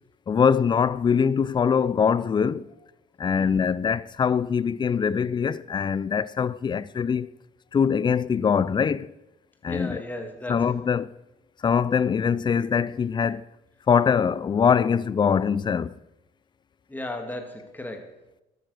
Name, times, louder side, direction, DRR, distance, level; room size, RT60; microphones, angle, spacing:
voice 1, 0.3-2.7 3.2-7.3 7.7-9.1 9.6-10.0 10.5-11.1 11.6-13.4 13.9-15.9, left 6 dB, 25° left, 0.4 m, -23 dB
voice 2, 9.7-10.8 16.9-18.1, left 1 dB, 10° left, 2.1 m, -35 dB
12.5 x 8.9 x 6.4 m
cardioid pair, 110°, 17 cm